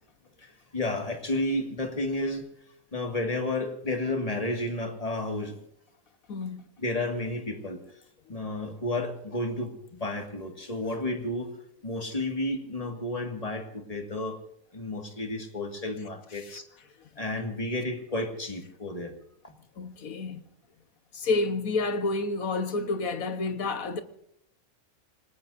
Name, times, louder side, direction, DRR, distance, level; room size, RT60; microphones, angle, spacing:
voice 1, 0.4-2.5 2.9-5.6 6.8-7.8 8.3-11.5 11.8-14.4 14.7-16.6 17.2-19.1 19.4-19.5, left 1 dB, 25° left, 2.1 m, -32 dB
voice 2, 6.3-6.7 16.4-16.6 19.8-20.4 21.1-24.0, left 3 dB, 80° left, 1.7 m, -29 dB
27.5 x 19.5 x 2.7 m
omnidirectional pair, 1.4 m